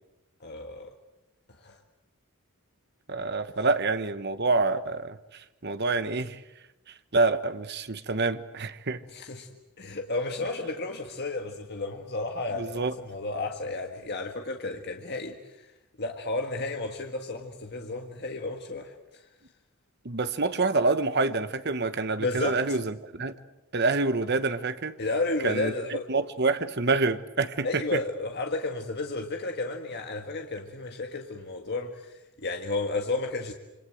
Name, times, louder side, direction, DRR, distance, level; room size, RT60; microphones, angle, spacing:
voice 1, 0.4-0.9 1.6-1.8 9.1-9.5 9.8-15.7 16.0-19.3 22.2-22.6 25.0-26.1 27.6-33.5, left 2 dB, 50° left, 3 dB, 1.8 m, -32 dB
voice 2, 3.1-6.4 7.1-9.0 12.6-12.9 20.0-23.3 23.7-25.0 25.4-28.0, right 3 dB, 50° right, 11 dB, 1.2 m, -27 dB
27.0 x 26.0 x 7.9 m, 0.98 s
head